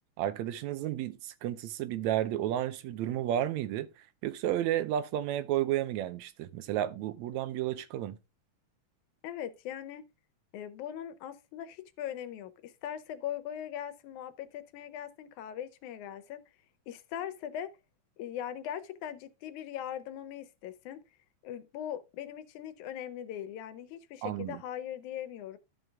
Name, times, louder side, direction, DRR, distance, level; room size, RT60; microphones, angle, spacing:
voice 1, 0.2-3.9 4.2-8.2 24.2-24.6, right 12 dB, 80° right, 2.0 m, -32 dB
voice 2, 9.2-10.1 10.5-16.4 16.9-17.7 18.2-21.0 21.4-25.6, left 10 dB, 85° left, 2.2 m, -40 dB
12.5 x 5.5 x 3.5 m
omnidirectional pair, 3.4 m